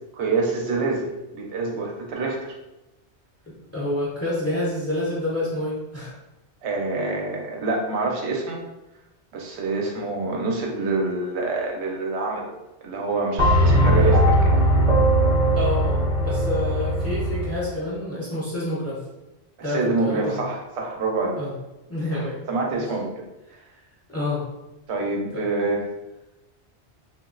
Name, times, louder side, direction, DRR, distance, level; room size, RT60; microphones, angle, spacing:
voice 1, 0.1-1.1 1.3-2.5 6.6-8.6 9.3-12.5 12.8-14.4 19.6-21.4 22.1-23.2 24.9-25.9, right 3 dB, 80° right, 0 dB, 0.9 m, -26 dB
voice 2, 3.7-6.1 13.6-14.2 15.5-19.0 19.6-20.4 21.4-21.5 21.9-22.4 22.7-22.8 24.1-24.4 25.3-25.4, left 1 dB, 15° left, -7 dB, 0.6 m, -28 dB
sound 1, 13.4-17.6, equal, 45° right, 0.8 m, -19 dB
2.9 x 2.3 x 2.4 m, 0.97 s
omnidirectional pair, 1.1 m